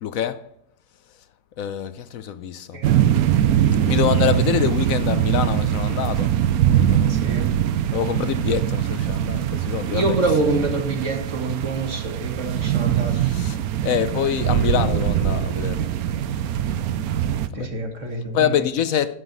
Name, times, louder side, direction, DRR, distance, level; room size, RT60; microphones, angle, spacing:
voice 1, 0.0-0.5 1.6-2.8 3.9-6.4 6.7-7.4 7.9-10.1 13.2-15.9 17.5-17.7 18.3-19.2, left 9 dB, 65° left, 1.0 m, -25 dB
voice 2, 2.7-3.0 7.0-7.5 9.9-13.2 17.5-18.6, right 2 dB, 50° right, 2.0 m, -26 dB
sound 1, 2.8-17.5, right 10 dB, 70° right, 1.1 m, -22 dB
12.0 x 7.6 x 4.0 m
omnidirectional pair, 1.6 m